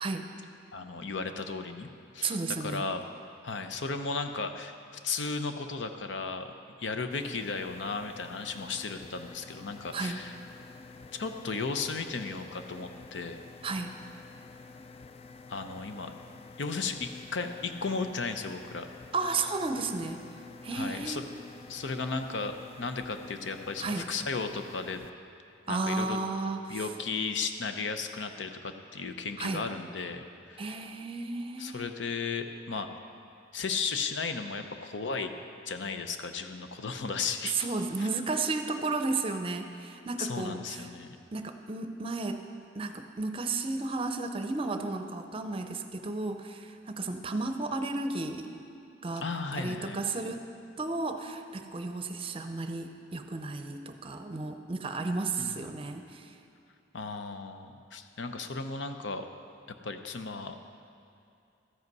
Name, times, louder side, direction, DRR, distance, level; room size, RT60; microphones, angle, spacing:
voice 1, 0.7-2.4 2.6-3.0 3.4-10.4 11.1-13.4 15.5-16.1 16.6-18.9 20.7-21.2 21.7-25.0 25.7-26.2 26.7-30.8 31.6-32.9 33.5-35.3 35.7-37.7 40.2-41.2 49.2-50.0 55.4-55.6 56.9-59.3 59.8-60.6, left 4 dB, 80° left, 7 dB, 0.7 m, -35 dB
voice 2, 2.2-2.8 9.9-10.2 13.6-13.9 19.1-20.2 20.6-21.2 23.8-24.1 25.7-26.8 29.4-29.6 30.6-31.9 37.4-40.9 41.3-42.4 42.7-48.5 49.0-49.3 49.5-50.4 50.8-56.3, right 3 dB, 30° right, 6 dB, 0.6 m, -33 dB
sound 1, 7.1-25.1, left 4 dB, 35° left, 0.4 m, -50 dB
13.5 x 8.0 x 5.4 m, 2.6 s
head